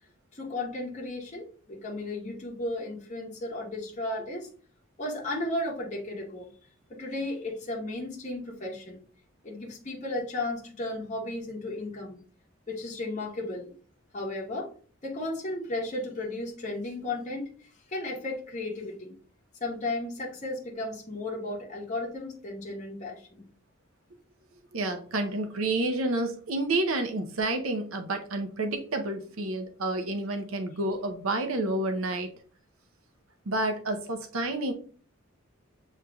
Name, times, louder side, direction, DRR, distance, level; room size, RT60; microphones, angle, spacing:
voice 1, 0.3-4.5 5.0-6.5 6.9-9.0 9.4-12.2 12.7-13.7 14.1-14.7 15.0-19.1 19.6-23.4, left 2 dB, 35° left, -3 dB, 1.2 m, -34 dB
voice 2, 24.7-32.3 33.5-34.7, right 2 dB, 85° right, 6 dB, 0.7 m, -29 dB
7.3 x 3.2 x 2.3 m, 0.43 s
head